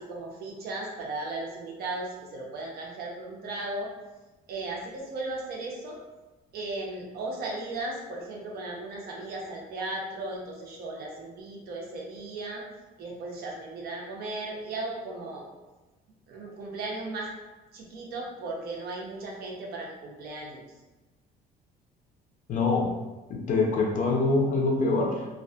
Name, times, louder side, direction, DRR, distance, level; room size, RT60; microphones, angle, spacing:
voice 1, 0.0-3.9 4.5-6.0 6.5-12.6 13.0-15.5 16.3-17.3 17.7-20.6, right 2 dB, 65° right, -1 dB, 0.6 m, -36 dB
voice 2, 22.5-22.9 23.3-25.3, left 3 dB, 50° left, 0 dB, 0.6 m, -24 dB
2.4 x 2.4 x 2.3 m, 1.1 s
cardioid pair, 110°, 17 cm